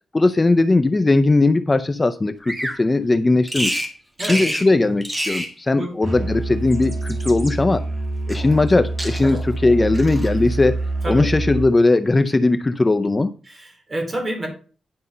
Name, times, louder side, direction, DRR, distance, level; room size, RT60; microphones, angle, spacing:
voice 1, 0.1-3.8 4.3-7.8 8.3-10.8 11.1-13.3, left 2 dB, 20° left, 10 dB, 0.5 m, -18 dB
Bird vocalization bird call bird song, 2.5-2.8 3.5-3.9 4.2-4.7 5.0-5.5 6.5-7.5 8.3-8.7 9.0-9.5 9.9-10.3, equal, 15° right, 2.1 m, -28 dB
voice 2, 4.2-4.9 5.7-6.3 9.2-9.4 11.0-11.3 13.4-14.5, right 1 dB, 30° right, 2 dB, 3.7 m, -30 dB
Musical instrument, 6.0-11.7, right 2 dB, 55° right, 3.5 m, -26 dB
10.5 x 5.4 x 5.5 m, 0.39 s
wide cardioid pair, 115°, 0 cm